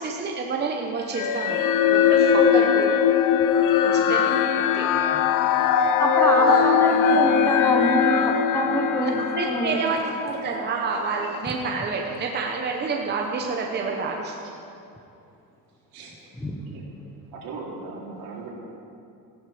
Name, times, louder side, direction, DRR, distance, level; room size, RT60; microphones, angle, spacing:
voice 1, 0.0-3.0 3.8-4.3 4.7-4.9 6.2-6.6 9.0-14.4, right 4 dB, 30° right, 1 dB, 0.9 m, -29 dB
sound 1, 1.1-10.7, left 7 dB, 60° left, 0.7 m, -20 dB
voice 2, 3.6-4.1 5.8-5.9 6.5-6.6 14.4-14.5 15.9-16.1 16.6-16.8 17.3-18.5, right 4 dB, 70° right, -3 dB, 3.5 m, -39 dB
voice 3, 6.0-9.8 16.4-16.6, equal, 5° left, 1 dB, 0.8 m, -26 dB
15.5 x 12.0 x 5.0 m, 2.6 s
cardioid pair, 155°, 36 cm